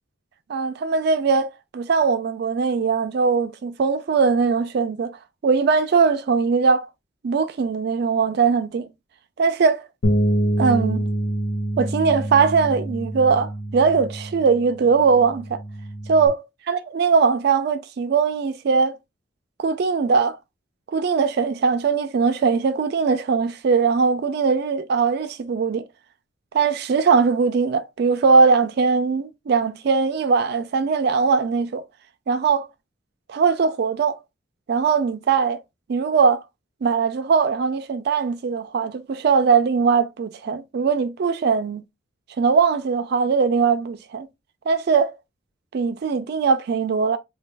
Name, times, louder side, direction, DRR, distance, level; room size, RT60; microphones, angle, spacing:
voice 1, 0.5-5.1 5.4-6.9 7.2-8.9 9.4-9.8 10.6-11.1 11.8-15.6 16.1-18.9 19.6-20.4 20.9-25.8 26.5-31.8 32.3-32.7 33.3-34.1 34.7-35.6 35.9-36.4 36.8-41.8 42.4-44.3 44.7-45.1 45.7-47.2, right 5 dB, 55° right, 0.3 m, -20 dB
Bass guitar, 10.0-16.3, right 1 dB, 75° left, 0.8 m, -26 dB
4.1 x 2.2 x 3.2 m
head